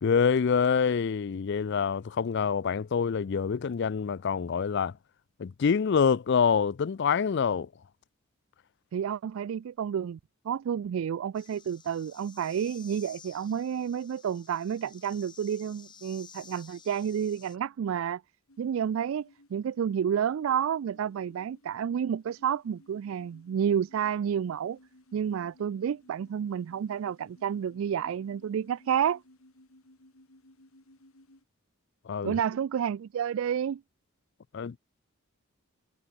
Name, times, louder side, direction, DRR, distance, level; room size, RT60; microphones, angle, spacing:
voice 1, 0.0-4.9 5.4-7.7 32.1-32.4 34.5-34.8, left 6 dB, 55° left, 0.4 m, -26 dB
voice 2, 8.9-10.2 10.4-18.2 18.6-24.8 25.1-29.2 32.2-33.8, right 8 dB, 65° right, 0.3 m, -30 dB
sound 1, 11.3-17.6, left 7 dB, 20° left, 1.6 m, -53 dB
sound 2, 18.5-31.4, left 1 dB, 80° left, 5.5 m, -59 dB
head